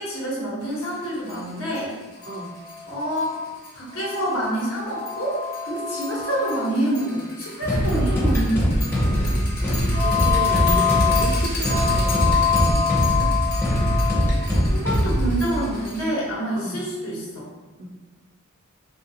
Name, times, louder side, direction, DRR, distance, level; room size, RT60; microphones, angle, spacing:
voice 1, 0.0-1.9 2.9-3.2 3.7-8.8 14.6-17.5, right 1 dB, 75° left, -6 dB, 1.0 m, -27 dB
sound 1, 0.8-0.9 1.3-1.4 1.8-1.9 2.2-16.1, left 7 dB, 45° left, 0.7 m, -27 dB
sound 2, 7.6-15.3, equal, 10° left, 0.6 m, -22 dB
voice 2, 9.1-9.6 10.0-13.4 16.6-16.8 17.8-17.9, right 2 dB, 35° right, 0 dB, 0.4 m, -33 dB
3.1 x 2.4 x 2.7 m, 1.2 s
head